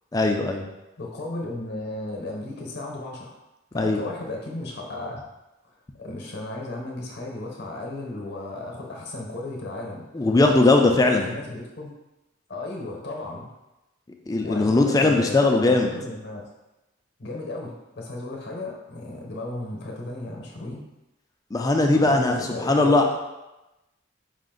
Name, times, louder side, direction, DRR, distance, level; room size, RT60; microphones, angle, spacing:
voice 1, 0.1-0.7 3.7-4.0 10.1-11.3 14.3-15.9 21.5-23.1, left 2 dB, 20° left, 3 dB, 0.4 m, -19 dB
voice 2, 1.0-3.3 3.7-5.2 6.0-11.9 12.5-13.5 14.4-16.4 17.2-20.8 21.9-23.1, left 2 dB, 55° left, 0 dB, 0.8 m, -35 dB
5.0 x 2.5 x 3.7 m, 0.99 s
head